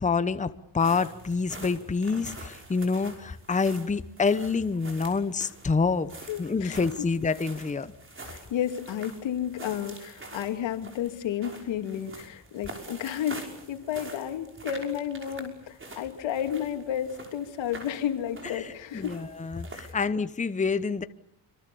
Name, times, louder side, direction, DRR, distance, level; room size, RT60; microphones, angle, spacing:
voice 1, 0.0-6.1 6.4-7.9 18.6-21.0, left 4 dB, 15° left, 12 dB, 1.0 m, -27 dB
sound 1, 0.8-19.9, right 2 dB, 30° right, 5.8 m, -46 dB
voice 2, 6.3-6.8 8.2-19.2 19.8-20.0, left 9 dB, 90° left, 6 dB, 2.8 m, -32 dB
27.0 x 24.5 x 7.0 m, 0.77 s
cardioid pair, 120°, 44 cm